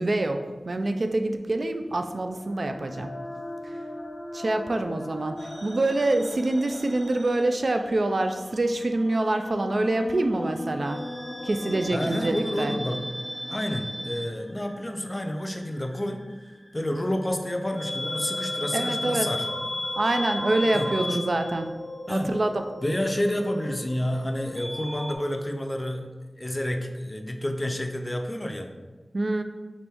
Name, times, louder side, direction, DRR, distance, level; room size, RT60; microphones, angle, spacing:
voice 1, 0.0-3.1 4.3-11.0 11.4-12.7 18.7-19.3 20.0-21.7 22.1-22.6 29.1-29.4, right 2 dB, 60° right, 7 dB, 0.3 m, -26 dB
sound 1, 2.0-15.6, left 1 dB, 85° left, 0.9 m, -41 dB
sound 2, 5.4-8.2 8.5-9.7 10.9-25.2, left 1 dB, 15° right, 1.0 m, -36 dB
voice 2, 11.9-13.0 13.5-16.2 16.7-19.5 20.7-21.2 22.1-22.3 22.8-26.0 26.4-28.7, left 1 dB, 25° left, 4 dB, 0.4 m, -29 dB
4.4 x 2.6 x 3.4 m, 1.3 s
wide cardioid pair, 45°, 0 cm